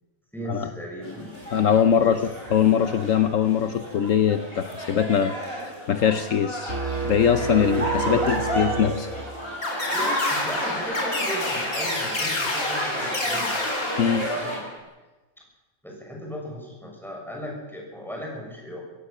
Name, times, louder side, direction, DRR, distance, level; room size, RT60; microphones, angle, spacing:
voice 1, 0.3-1.3 2.0-2.1 8.0-8.3 9.9-13.6 14.1-14.7 15.8-18.8, equal, ahead, -2 dB, 7.1 m, -36 dB
sound 1, 1.0-14.6, equal, 40° left, 6.4 m, -32 dB
voice 2, 1.5-2.2 2.5-6.8 7.0-9.1 9.9-10.0 14.0-14.3, left 8 dB, 70° left, 9 dB, 1.3 m, -22 dB
sound 2, 6.7-9.6, right 5 dB, 75° right, 3.6 m, -30 dB
sound 3, 9.6-14.8, left 2 dB, 90° left, 4.4 m, -29 dB
25.0 x 16.5 x 7.3 m, 1.1 s
omnidirectional pair, 1.4 m